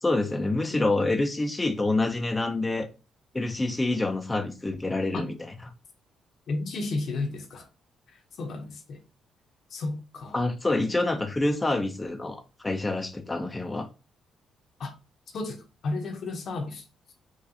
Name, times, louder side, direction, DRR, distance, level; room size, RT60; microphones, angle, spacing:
voice 1, 0.0-2.9 3.3-5.3 10.3-13.9, left 2 dB, 15° left, 0.4 m, -27 dB
voice 2, 6.5-7.7 8.4-9.0 9.7-10.4 14.8-14.9 15.3-16.8, left 3 dB, 60° left, 0.8 m, -33 dB
3.9 x 2.3 x 2.7 m
cardioid pair, 90°, 0 cm